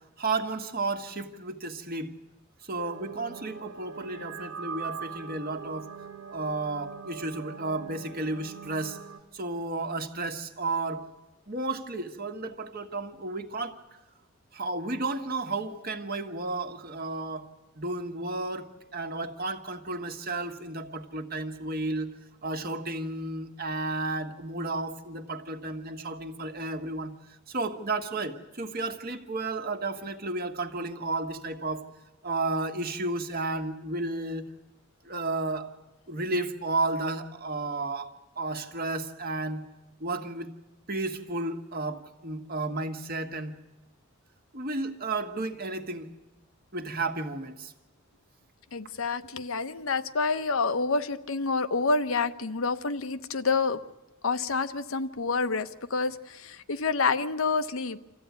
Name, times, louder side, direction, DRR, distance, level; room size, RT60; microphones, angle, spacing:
voice 1, 0.2-2.1 2.6-5.9 6.3-9.0 9.3-11.1 11.5-13.7 14.5-17.5 17.8-22.1 22.4-31.9 32.2-34.5 35.0-35.7 36.1-39.6 40.0-40.5 40.9-43.6 44.5-46.1 46.7-47.7, right 2 dB, 45° right, 6 dB, 1.5 m, -32 dB
sound 1, 2.8-9.2, right 6 dB, 85° right, 1.9 m, -42 dB
voice 2, 48.7-53.8 54.2-58.0, left 4 dB, 80° left, 10 dB, 0.9 m, -28 dB
26.0 x 14.5 x 9.4 m, 1.1 s
head